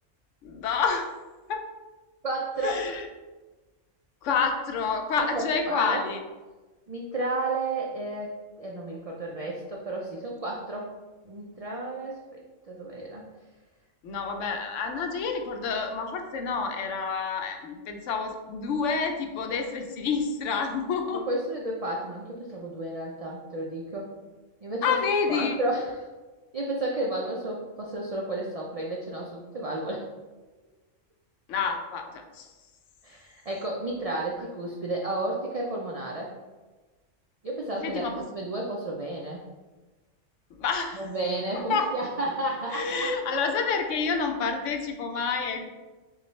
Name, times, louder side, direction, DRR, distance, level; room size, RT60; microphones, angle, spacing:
voice 1, 0.4-1.1 1.5-1.6 2.6-3.1 4.2-6.2 14.0-21.2 24.8-25.6 31.5-32.5 37.8-38.2 40.6-41.1 41.5-41.9 42.7-45.7, left 5 dB, 75° left, 4 dB, 0.9 m, -28 dB
voice 2, 2.2-2.8 5.3-6.0 6.9-8.3 8.6-10.9 11.2-12.2 12.7-13.2 21.3-24.1 24.6-25.0 25.3-26.0 26.5-30.1 33.0-36.3 37.4-39.4 40.9-42.9, right 2 dB, 70° right, -2 dB, 0.3 m, -32 dB
5.7 x 2.3 x 3.0 m, 1.2 s
omnidirectional pair, 1.3 m